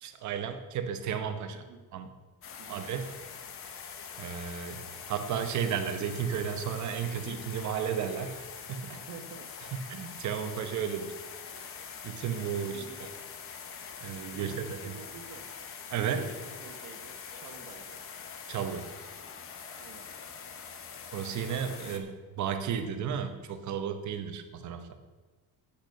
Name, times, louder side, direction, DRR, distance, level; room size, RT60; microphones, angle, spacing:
voice 1, 0.0-1.6 1.9-2.1 2.7-3.1 4.2-4.8 5.1-8.9 9.9-11.1 12.0-12.8 14.0-14.8 15.9-16.3 18.5-18.9 21.1-24.9, right 8 dB, 50° right, 8 dB, 0.9 m, -33 dB
voice 2, 1.5-1.8 2.6-2.8 8.9-9.5 12.3-12.4 12.7-13.1 14.3-15.5 16.0-18.0 19.7-20.1 21.8-22.1, right 5 dB, 70° right, 6 dB, 1.2 m, -49 dB
sound 1, 2.4-22.0, left 6 dB, 35° left, 0.8 m, -44 dB
8.3 x 6.6 x 6.5 m, 1.3 s
cardioid pair, 180°, 38 cm